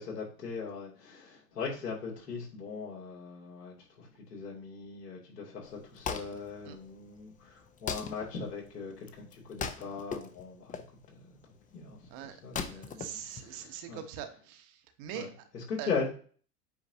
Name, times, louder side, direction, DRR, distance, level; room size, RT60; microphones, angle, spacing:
voice 1, 0.0-10.8 11.1-12.1 12.4-14.0 15.1-15.3 15.5-16.1, left 5 dB, 80° left, -3 dB, 2.9 m, -39 dB
Wood, 5.6-14.0, left 6 dB, 15° left, 0.7 m, -41 dB
voice 2, 12.7-15.5 15.8-15.9, right 9 dB, 45° right, 8 dB, 1.2 m, -42 dB
8.4 x 5.0 x 2.8 m, 0.43 s
hypercardioid pair, 90°, 47 cm